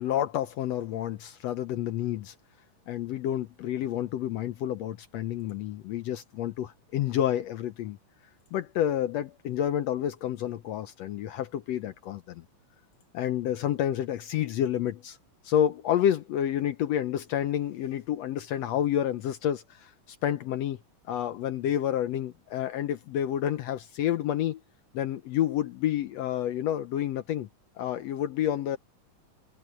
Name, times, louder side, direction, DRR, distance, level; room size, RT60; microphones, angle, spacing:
voice 1, 0.0-2.3 2.9-8.0 8.5-12.4 13.1-15.2 15.4-20.8 21.1-24.6 24.9-27.5 27.8-28.8, left 11 dB, 75° left, 1.5 m, -29 dB
omnidirectional pair, 3.8 m